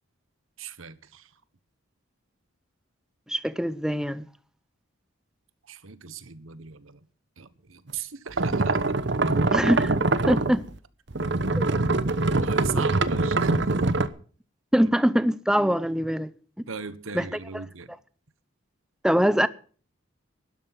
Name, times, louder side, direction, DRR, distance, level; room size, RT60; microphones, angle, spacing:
voice 1, 0.6-1.3 5.6-7.1 7.4-9.0 12.4-13.8 14.7-14.9 16.7-17.9, right 6 dB, 75° right, 1.2 m, -39 dB
voice 2, 3.3-4.3 9.5-10.0 10.3-10.6 11.6-11.7 12.7-12.8 14.7-16.3 16.6-16.7 17.1-17.2 19.0-19.5, equal, 5° right, 0.6 m, -23 dB
sound 1, 8.4-10.8 11.1-14.1, right 3 dB, 55° right, 0.9 m, -24 dB
12.5 x 11.5 x 5.9 m
head